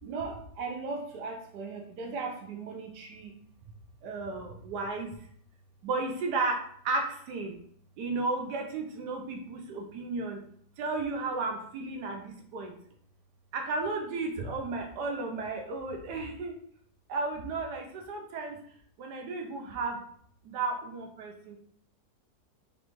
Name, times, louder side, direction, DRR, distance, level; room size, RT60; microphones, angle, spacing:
voice 1, 0.0-3.3 4.0-5.1 5.8-7.5 8.0-10.4 10.8-12.7 13.5-16.5 17.1-18.6 19.0-20.0 20.4-21.6, right 3 dB, 85° right, 2 dB, 1.3 m, -34 dB
3.9 x 3.2 x 3.0 m, 0.63 s
omnidirectional pair, 1.7 m